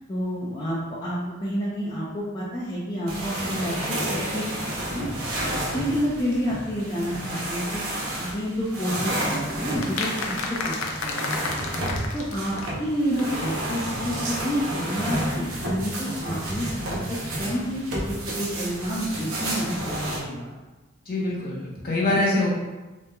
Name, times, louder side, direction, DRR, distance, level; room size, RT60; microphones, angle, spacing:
voice 1, 0.1-5.1 5.3-11.5 11.8-12.5 12.8-20.5 21.2-21.3, equal, 20° left, -8 dB, 0.5 m, -29 dB
sound 1, 3.1-20.2, right 1 dB, 80° right, 0.8 m, -31 dB
sound 2, 9.2-12.9 13.2-13.3 13.5-13.6 13.8-13.9, left 3 dB, 75° left, 0.4 m, -31 dB
voice 2, 21.1-22.5, left 2 dB, 45° left, -5 dB, 0.9 m, -25 dB
3.4 x 2.9 x 2.2 m, 1.2 s
head